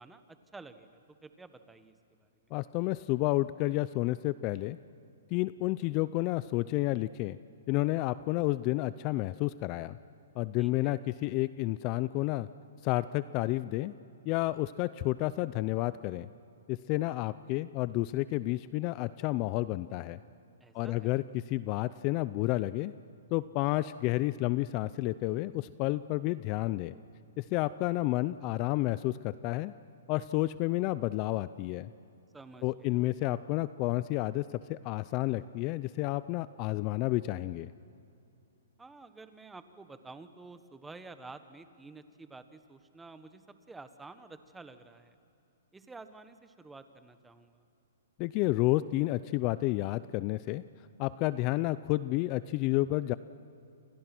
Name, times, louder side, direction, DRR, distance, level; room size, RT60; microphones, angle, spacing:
voice 1, 0.0-2.3 10.6-11.0 20.6-21.1 32.3-33.0 38.8-43.4 43.7-45.1 45.7-47.6, right 3 dB, 5° right, 10 dB, 1.3 m, -50 dB
voice 2, 2.5-4.8 5.3-7.4 7.7-10.0 10.4-12.5 12.8-13.9 14.2-16.3 16.7-20.2 20.7-22.9 23.3-26.9 27.4-29.7 30.1-31.9 32.6-37.7 48.2-50.6 51.0-53.2, left 18 dB, 35° left, 16 dB, 0.5 m, -30 dB
29.5 x 27.0 x 6.1 m, 2.7 s
hypercardioid pair, 145°, 0 cm